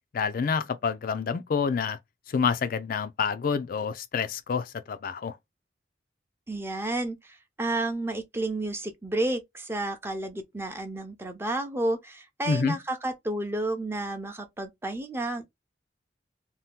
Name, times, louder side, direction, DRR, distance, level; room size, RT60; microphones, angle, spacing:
voice 1, 0.1-2.0 2.3-5.4 12.5-12.8, left 5 dB, 50° left, 0.3 m, -28 dB
voice 2, 6.5-15.5, right 2 dB, 15° right, 0.6 m, -31 dB
2.8 x 2.1 x 3.4 m
head